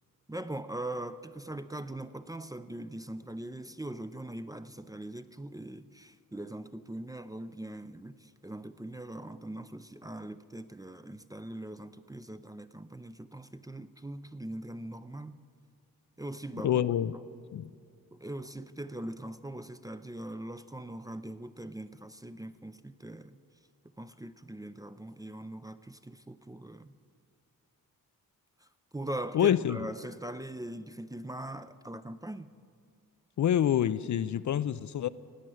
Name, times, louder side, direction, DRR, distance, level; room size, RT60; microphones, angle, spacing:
voice 1, 0.3-15.4 16.2-16.8 18.1-23.4 24.0-26.9 28.6-28.7 28.9-32.5, right 1 dB, 10° right, 0.4 m, -41 dB
voice 2, 16.6-17.1 17.5-17.7 29.3-29.8 33.4-35.1, left 10 dB, 55° left, 0.5 m, -26 dB
18.0 x 7.6 x 9.3 m
cardioid pair, 80°, 35 cm